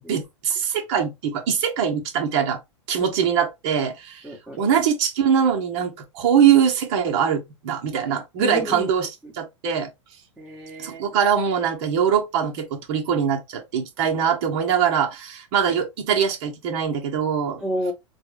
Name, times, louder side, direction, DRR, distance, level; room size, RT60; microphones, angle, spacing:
voice 1, 0.0-2.6 2.9-4.2 4.6-9.1 9.3-9.9 10.8-17.6, right 8 dB, 55° right, 1.5 m, -22 dB
voice 2, 4.2-4.6 8.4-8.9 9.2-9.3 10.4-11.0 17.6-17.9, left 1 dB, ahead, 1.4 m, -30 dB
4.3 x 2.7 x 3.3 m
hypercardioid pair, 100°, 16 cm